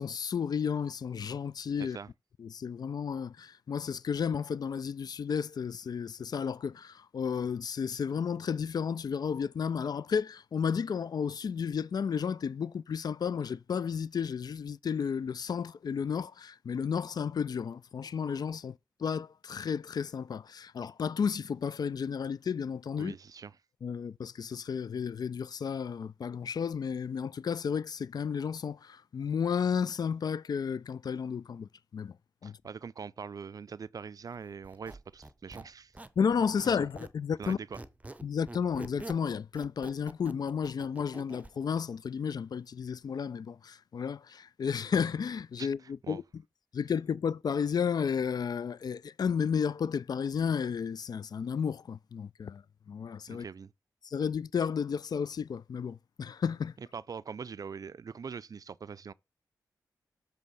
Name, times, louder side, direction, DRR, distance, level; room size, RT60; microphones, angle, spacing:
voice 1, 0.0-2.0 2.4-23.2 23.8-32.1 32.4-32.6 36.2-37.6 38.2-46.2 46.7-53.4 54.0-56.7, left 6 dB, 60° left, 0.3 m, -32 dB
voice 2, 1.8-2.1 23.0-23.6 32.4-35.9 36.8-36.9 37.4-37.8 45.6-46.2 53.3-53.7 56.8-59.1, right 6 dB, 55° right, 0.4 m, -43 dB
Squeak, 34.6-37.2 37.4-41.5, right 2 dB, 20° right, 0.7 m, -46 dB
7.4 x 3.5 x 5.5 m
cardioid pair, 50°, 8 cm